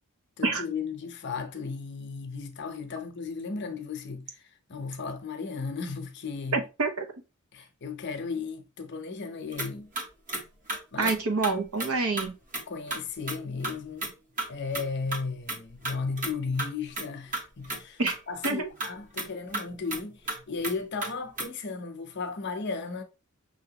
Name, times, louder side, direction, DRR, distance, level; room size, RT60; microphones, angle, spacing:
voice 1, 0.4-6.6 7.5-9.9 10.9-11.1 12.7-14.1 14.5-18.0 18.3-23.0, left 4 dB, 50° left, 0.7 m, -35 dB
voice 2, 6.5-7.1 11.0-12.3 18.0-18.2 18.4-18.7, right 3 dB, 75° right, 0.8 m, -27 dB
sound 1, 9.5-9.7 10.0-10.4 10.7-11.2 11.4-11.5 11.8-11.9 12.2-12.3 12.5-13.0 13.3-13.4 13.6-13.7 14.0-14.1 14.4-14.5 14.7-14.9 15.1-15.2 15.5-16.3 16.6-16.7 17.0-17.1 17.3-18.2 18.4-18.5 18.8-18.9 19.2-19.3 19.5-20.0 20.3-20.4 20.6-21.4, right 2 dB, 35° right, 1.1 m, -32 dB
5.4 x 2.9 x 2.9 m
head